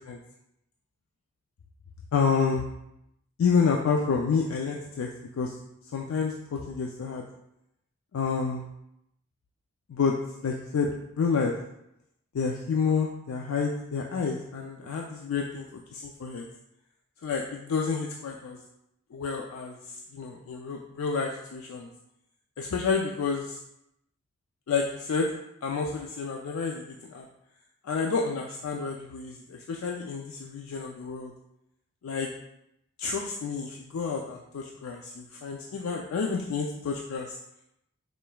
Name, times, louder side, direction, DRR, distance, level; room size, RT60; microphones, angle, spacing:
voice 1, 2.1-2.6 3.4-5.1 5.4-5.6 5.9-7.2 8.1-8.6 9.9-10.2 10.4-10.9 11.2-11.5 12.3-16.5 17.2-18.6 19.1-21.9 22.6-23.6 24.7-25.3 25.6-27.3 27.8-31.3 32.0-32.3 33.0-37.4, left 5 dB, 90° left, 0 dB, 0.4 m, -29 dB
5.0 x 3.3 x 2.2 m, 0.82 s
head